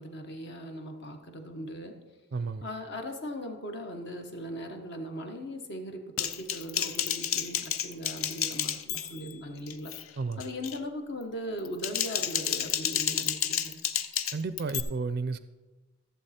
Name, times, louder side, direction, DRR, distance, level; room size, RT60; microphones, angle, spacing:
voice 1, 0.0-2.0 2.6-13.8, equal, 55° left, 4 dB, 1.2 m, -39 dB
voice 2, 2.3-2.6 10.2-10.4 14.3-15.4, right 4 dB, 45° right, 13 dB, 0.4 m, -32 dB
Typing, 6.2-9.3 9.7-10.0 10.4-10.8 11.6-14.8, left 10 dB, 75° left, 0.6 m, -31 dB
14.5 x 7.2 x 4.3 m, 1.2 s
head